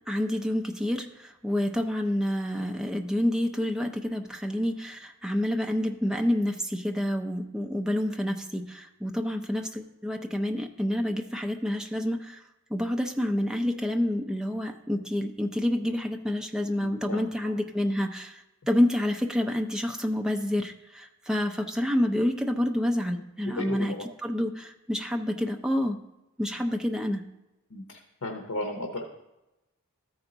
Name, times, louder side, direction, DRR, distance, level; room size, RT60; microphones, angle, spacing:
voice 1, 0.1-12.4 12.7-23.9 24.2-26.0 26.4-27.2, left 1 dB, 5° right, 4 dB, 0.5 m, -28 dB
voice 2, 16.8-17.3 23.5-24.1 27.7-29.0, left 1 dB, 80° left, 3 dB, 0.9 m, -35 dB
13.5 x 4.5 x 3.9 m, 0.98 s
head